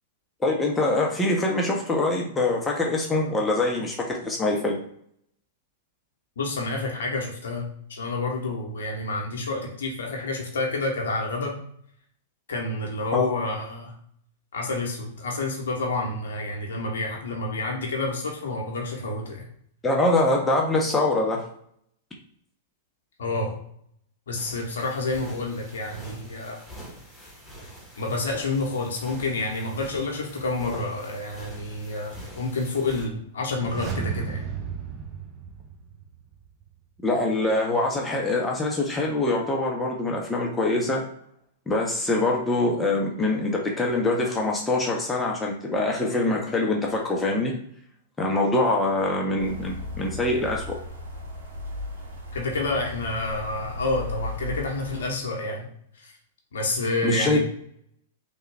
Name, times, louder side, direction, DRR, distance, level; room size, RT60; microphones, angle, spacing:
voice 1, 0.4-4.8 13.1-13.3 19.8-21.4 37.0-41.0 41.7-47.5 48.2-50.8 57.0-57.4, left 2 dB, 15° left, -1 dB, 0.6 m, -24 dB
voice 2, 6.4-11.6 12.5-13.9 14.5-19.4 23.2-23.6 24.3-26.6 28.0-34.4 52.3-55.7 56.0-56.1 56.5-57.4, left 2 dB, 70° left, 0 dB, 0.8 m, -29 dB
sound 1, 24.4-33.1, right 1 dB, 5° right, 1.2 m, -44 dB
sound 2, 33.5-36.3 36.6-36.7, right 6 dB, 35° right, 0.6 m, -34 dB
sound 3, 49.4-55.1, left 1 dB, 75° right, 0.8 m, -36 dB
3.3 x 2.2 x 3.3 m, 0.67 s
hypercardioid pair, 105°, 0 cm